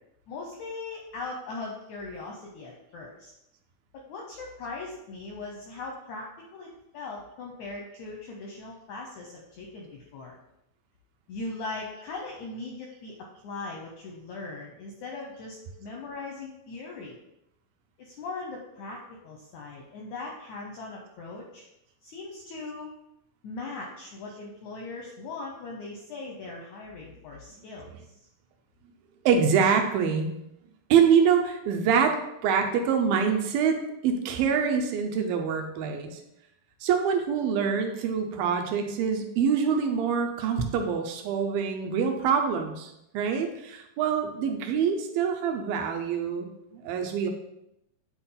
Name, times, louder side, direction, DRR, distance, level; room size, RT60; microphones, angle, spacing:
voice 1, 0.3-3.3 4.1-10.4 11.3-13.1 13.4-17.2 18.0-21.6 22.0-22.9 23.4-28.2 44.2-44.5, left 3 dB, 75° left, 0 dB, 1.7 m, -39 dB
voice 2, 29.3-30.3 30.9-36.1 36.8-46.5 46.7-47.3, right 6 dB, 80° right, 4 dB, 2.4 m, -25 dB
8.8 x 4.4 x 3.9 m, 0.83 s
omnidirectional pair, 4.3 m